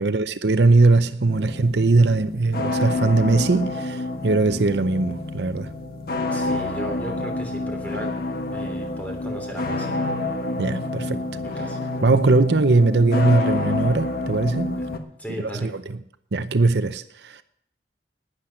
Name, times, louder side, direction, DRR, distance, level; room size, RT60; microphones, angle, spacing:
voice 1, 0.0-5.7 10.6-11.3 12.0-14.8 15.6-16.0 16.3-17.4, right 3 dB, 70° right, 0.7 m, -20 dB
sound 1, 1.3-15.0, left 2 dB, 55° left, 1.3 m, -28 dB
voice 2, 6.3-8.1 8.5-10.0 11.3-11.8 14.7-15.7, equal, 10° left, 3.3 m, -36 dB
12.0 x 10.5 x 7.8 m
head